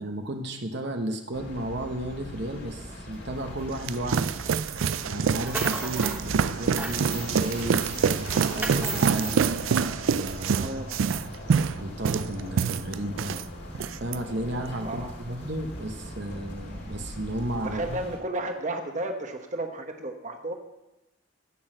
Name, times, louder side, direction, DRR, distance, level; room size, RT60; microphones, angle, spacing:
voice 1, 0.0-4.4 5.0-9.4 10.0-10.7 11.8-13.3 14.0-18.0, right 1 dB, 60° right, 4 dB, 1.2 m, -33 dB
sound 1, 1.3-18.2, left 1 dB, 60° left, 2.5 m, -40 dB
sound 2, 3.5-13.4 13.7-14.2, right 6 dB, 85° right, 0.4 m, -26 dB
sound 3, 5.2-6.2 6.6-7.5 7.9-9.4, right 2 dB, 10° right, 1.1 m, -35 dB
voice 2, 10.6-11.1 14.8-15.1 17.6-20.5, right 1 dB, 40° right, 4 dB, 1.2 m, -33 dB
15.0 x 6.4 x 7.7 m, 0.96 s
head